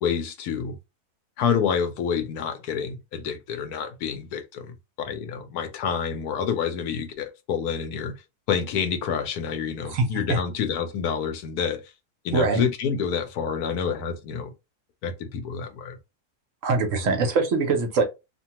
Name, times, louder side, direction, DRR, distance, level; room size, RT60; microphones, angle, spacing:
voice 1, 0.0-0.8 1.4-8.2 8.5-11.9 12.2-14.5 15.0-16.0, left 7 dB, 90° left, 1.2 m, -28 dB
voice 2, 9.9-10.4 12.3-12.6 16.6-18.0, right 4 dB, 65° right, 1.0 m, -23 dB
2.8 x 2.2 x 2.8 m
omnidirectional pair, 1.6 m